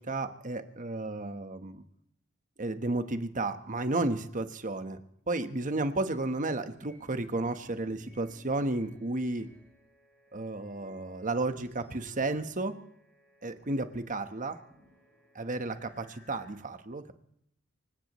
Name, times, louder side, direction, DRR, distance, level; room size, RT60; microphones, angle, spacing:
voice 1, 0.0-1.8 2.6-5.0 5.3-9.5 10.3-12.8 13.4-14.6 15.3-17.1, right 2 dB, 35° right, 9 dB, 1.2 m, -32 dB
sound 1, 6.7-16.5, left 1 dB, 10° left, 6.9 m, -59 dB
26.0 x 16.5 x 3.1 m, 0.74 s
head